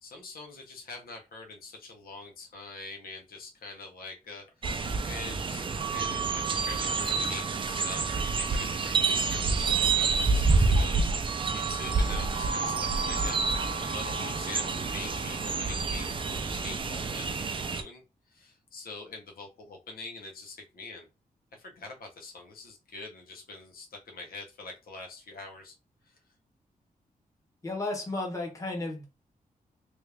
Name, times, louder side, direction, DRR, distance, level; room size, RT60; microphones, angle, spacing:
voice 1, 0.0-13.4 13.8-21.1 21.5-25.7 26.1-26.2, left 3 dB, 80° left, 1.0 m, -44 dB
sound 1, 4.6-17.8, right 4 dB, 35° right, 0.5 m, -28 dB
voice 2, 27.6-29.0, left 2 dB, 20° left, 1.2 m, -33 dB
3.2 x 2.5 x 3.3 m
wide cardioid pair, 125°, 15 cm